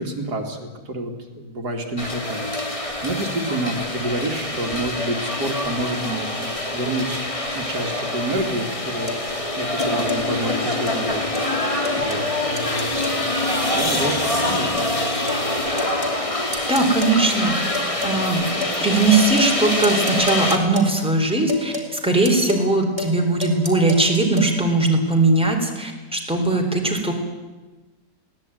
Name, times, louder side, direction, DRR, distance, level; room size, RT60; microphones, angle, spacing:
voice 1, 0.0-7.2 7.5-9.2 9.6-13.1 13.7-14.9, right 1 dB, 85° right, 3 dB, 3.1 m, -29 dB
sound 1, 2.0-20.6, left 1 dB, 20° left, 2.6 m, -25 dB
sound 2, 9.1-9.2 9.8-10.2 10.9-11.0 11.3-11.5 11.8-12.3 12.6-13.2 13.8-14.2 14.8-14.9 15.3-15.4 15.8-16.2 16.5-17.2 17.7-18.2 18.6-18.8 19.1-19.6 19.8-21.0 21.5-21.9 22.2-22.7 23.0-23.2 23.4-24.5, left 2 dB, 20° right, 3.8 m, -31 dB
voice 2, 16.7-17.7 18.0-18.4 18.8-27.1, right 2 dB, 5° right, 2 dB, 4.0 m, -19 dB
21.5 x 17.5 x 9.3 m, 1.2 s
omnidirectional pair, 1.7 m